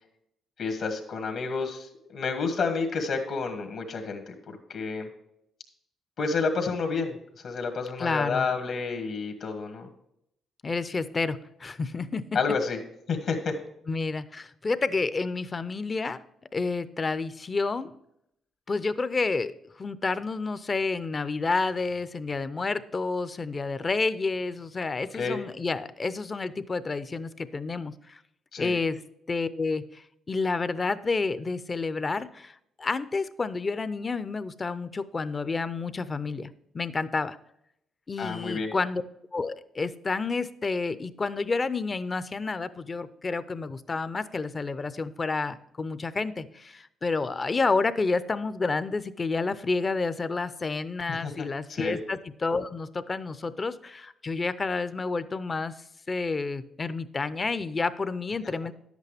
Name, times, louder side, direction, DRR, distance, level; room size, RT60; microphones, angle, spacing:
voice 1, 0.6-5.1 6.2-7.2 7.4-9.9 12.3-12.8 13.1-13.5 25.1-25.4 28.5-28.7 38.2-38.7 51.1-52.0, left 4 dB, 65° left, 3 dB, 1.6 m, -30 dB
voice 2, 8.0-8.5 10.6-12.2 13.9-16.2 16.5-17.9 18.7-28.2 28.6-29.0 29.3-37.4 38.1-39.0 39.3-55.7 56.1-58.7, left 3 dB, 30° left, 14 dB, 0.5 m, -30 dB
10.5 x 8.2 x 3.4 m, 0.77 s
cardioid pair, 90°, 0 cm